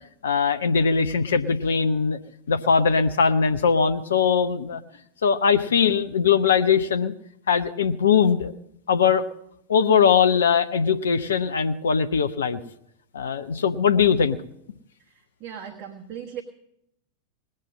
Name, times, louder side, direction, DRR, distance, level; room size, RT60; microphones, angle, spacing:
voice 1, 0.2-2.2 2.5-4.8 5.2-7.1 7.5-8.5 8.9-9.2 9.7-12.6 13.1-14.4, left 6 dB, 65° left, 10 dB, 0.7 m, -21 dB
voice 2, 15.0-16.4, right 9 dB, 35° right, 2 dB, 1.4 m, -38 dB
19.5 x 7.6 x 7.3 m, 0.76 s
figure-of-eight pair, 90°, 0 cm